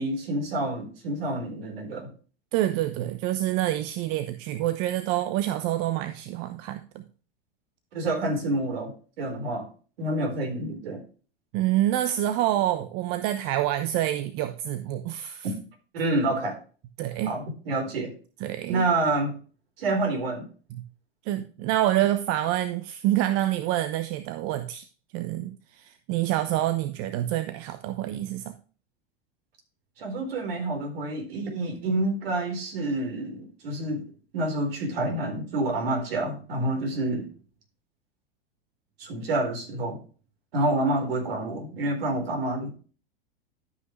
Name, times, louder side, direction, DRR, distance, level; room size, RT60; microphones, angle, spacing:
voice 1, 0.0-2.1 7.9-9.7 10.0-11.0 15.9-16.6 17.3-18.1 18.7-19.4 19.8-20.5 30.0-34.0 34.3-37.3 39.0-40.0 40.5-42.7, right 2 dB, 75° right, 2 dB, 4.2 m, -28 dB
voice 2, 2.5-7.0 11.5-15.5 17.0-17.4 18.4-18.9 20.7-20.8 21.2-24.8 25.1-28.5, right 13 dB, 50° right, 10 dB, 0.9 m, -27 dB
12.5 x 5.8 x 3.2 m, 0.38 s
hypercardioid pair, 100°, 30 cm